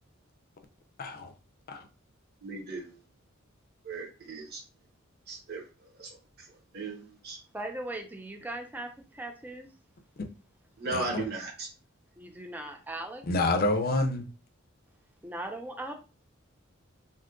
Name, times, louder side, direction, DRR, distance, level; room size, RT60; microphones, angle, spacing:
voice 1, 1.0-1.3 1.7-1.9 10.9-11.2 13.3-14.3, left 2 dB, 45° left, 0.5 m, -28 dB
voice 2, 2.4-2.9 3.8-4.6 5.3-5.6 6.0-6.1 6.7-7.4 10.8-11.7, right 3 dB, 50° right, 1.0 m, -36 dB
voice 3, 7.5-9.7 12.2-13.2 15.2-15.9, right 1 dB, 10° right, 0.5 m, -39 dB
2.7 x 2.4 x 3.6 m
head